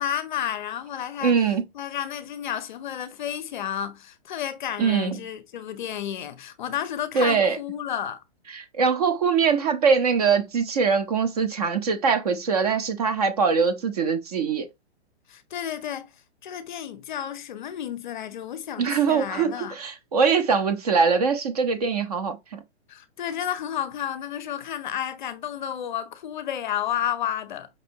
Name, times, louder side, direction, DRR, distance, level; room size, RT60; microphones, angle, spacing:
voice 1, 0.0-1.4 1.7-8.2 15.3-16.1 16.4-19.7 22.9-27.7, left 10 dB, 45° left, 0.5 m, -31 dB
voice 2, 1.2-1.6 4.8-5.1 7.1-7.6 8.5-14.7 18.8-22.6, right 5 dB, 35° right, 0.5 m, -22 dB
5.2 x 2.6 x 2.6 m
hypercardioid pair, 165°, 34 cm